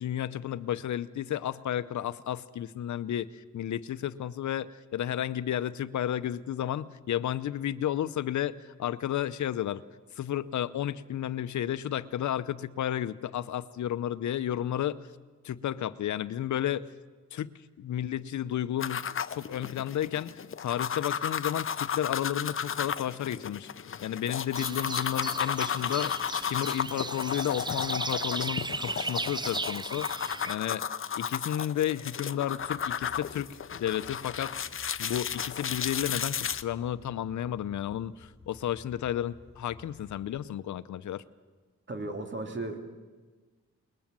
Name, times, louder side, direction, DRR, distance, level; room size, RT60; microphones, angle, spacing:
voice 1, 0.0-9.8 10.2-15.0 15.4-16.9 17.3-23.7 24.0-26.1 26.4-30.8 31.1-34.6 35.0-41.2, left 11 dB, 75° left, 15 dB, 0.7 m, -32 dB
sound 1, 18.8-36.6, left 7 dB, 45° left, 0.7 m, -34 dB
sound 2, 24.6-30.6, right 3 dB, 15° right, 0.6 m, -36 dB
sound 3, 32.6-40.4, left 3 dB, 20° left, 2.4 m, -55 dB
voice 2, 41.9-42.9, right 2 dB, 40° right, 5 dB, 2.8 m, -36 dB
21.5 x 20.0 x 7.6 m, 1.3 s
cardioid pair, 75°, 29 cm